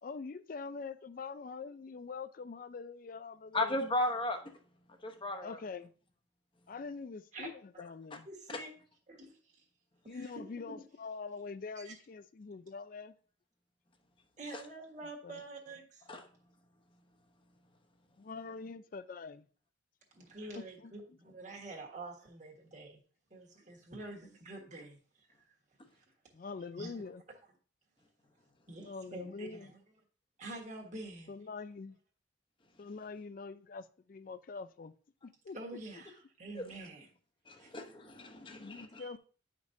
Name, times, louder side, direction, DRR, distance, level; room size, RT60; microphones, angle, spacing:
voice 1, 0.0-3.8 5.4-5.9 6.7-8.3 10.1-13.1 15.2-15.3 18.2-19.5 20.8-20.9 26.3-27.2 28.8-29.7 31.3-32.0 32.8-34.9 35.2-35.6 38.5-39.2, left 4 dB, 45° left, 0.4 m, -44 dB
voice 2, 3.5-4.4 5.0-5.6 16.1-16.2 37.5-39.2, left 1 dB, 25° left, 0.9 m, -35 dB
voice 3, 8.2-8.7 9.1-9.6 10.0-10.7 11.8-11.9 14.4-16.1 20.1-23.0 23.3-25.6 25.9-26.0 26.8-27.1 28.7-29.8 30.4-31.3 35.5-37.1 37.6-37.7 39.0-39.2, right 2 dB, 40° right, 1.5 m, -47 dB
9.4 x 5.1 x 2.7 m
head